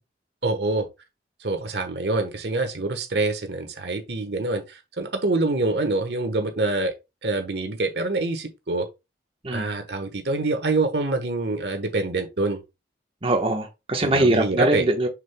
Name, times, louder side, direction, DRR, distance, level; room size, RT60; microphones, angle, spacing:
voice 1, 0.4-0.9 1.4-6.9 7.2-8.9 9.5-12.6 14.0-14.9, right 2 dB, 70° right, 1.2 m, -25 dB
voice 2, 13.2-15.1, right 1 dB, 30° right, 1.1 m, -22 dB
6.5 x 6.5 x 2.2 m
head